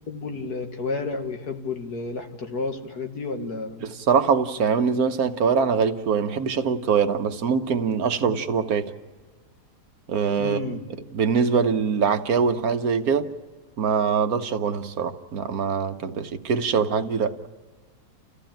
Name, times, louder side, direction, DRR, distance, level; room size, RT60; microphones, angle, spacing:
voice 1, 0.1-3.9 8.3-8.4 10.4-10.9, left 3 dB, 70° left, 2.4 m, -31 dB
voice 2, 3.8-8.9 10.1-10.6 11.1-13.3 13.8-17.4, right 6 dB, 65° right, 1.4 m, -23 dB
29.5 x 15.0 x 8.9 m
omnidirectional pair, 1.7 m